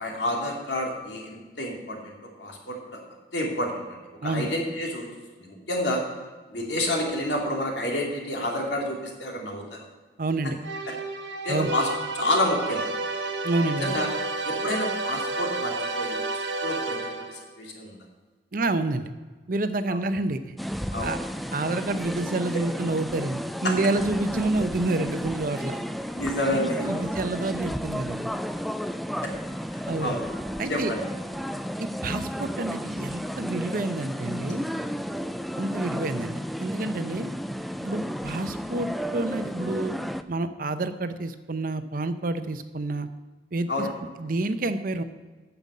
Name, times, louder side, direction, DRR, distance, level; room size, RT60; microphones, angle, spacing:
voice 1, 0.0-3.0 3.3-5.1 5.4-6.0 6.5-9.8 11.4-11.9 12.1-12.8 13.8-14.1 14.4-16.2 16.6-18.0 19.9-20.0 20.9-21.1 23.6-23.7 26.1-27.1 29.2-29.3 29.7-30.2 30.7-31.0 43.7-43.9, left 1 dB, 75° left, 0 dB, 2.7 m, -29 dB
voice 2, 10.2-10.6 11.5-11.7 13.4-14.0 18.5-19.1 19.5-20.6 21.0-21.2 21.5-25.8 26.5-28.3 29.9-30.2 30.6-30.9 31.8-34.6 35.6-37.3 37.8-39.9 40.3-43.1 43.5-43.9 44.2-45.0, right 2 dB, 50° right, 11 dB, 0.7 m, -28 dB
sound 1, 10.6-17.5, right 2 dB, 80° right, 1.2 m, -31 dB
sound 2, 20.6-40.2, equal, ahead, 0.3 m, -33 dB
9.2 x 7.0 x 8.3 m, 1.3 s
head